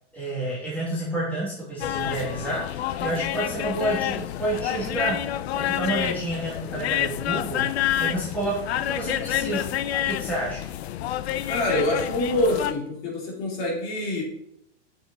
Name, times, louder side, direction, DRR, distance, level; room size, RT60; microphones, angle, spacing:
voice 1, 0.1-5.2 5.5-9.7 10.1-10.6, right 1 dB, 5° left, -8 dB, 2.7 m, -29 dB
sound 1, 1.8-12.7, left 12 dB, 60° left, 0.7 m, -28 dB
voice 2, 11.4-14.2, left 1 dB, 35° left, -2 dB, 3.6 m, -26 dB
9.0 x 7.0 x 4.2 m, 0.76 s
supercardioid pair, 160°, 36 cm